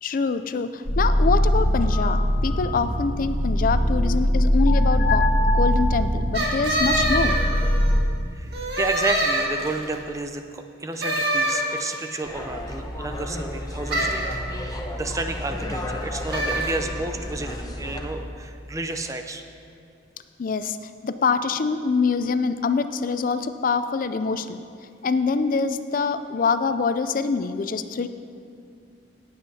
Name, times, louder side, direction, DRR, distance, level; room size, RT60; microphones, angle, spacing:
voice 1, 0.0-7.4 20.4-20.8 21.0-24.6 25.0-28.1, left 4 dB, 50° left, 11 dB, 0.4 m, -25 dB
sound 1, 0.9-8.0, equal, 80° left, 1.2 m, -21 dB
sound 2, 6.3-8.0 8.5-9.9 11.0-12.0 13.9-14.3 16.3-16.8, right 1 dB, 60° right, 1.8 m, -25 dB
voice 2, 8.3-19.4, right 2 dB, 20° right, 6 dB, 0.5 m, -31 dB
sound 3, 12.2-18.1, left 1 dB, 20° left, 0.8 m, -32 dB
17.0 x 8.0 x 2.8 m, 2.4 s
head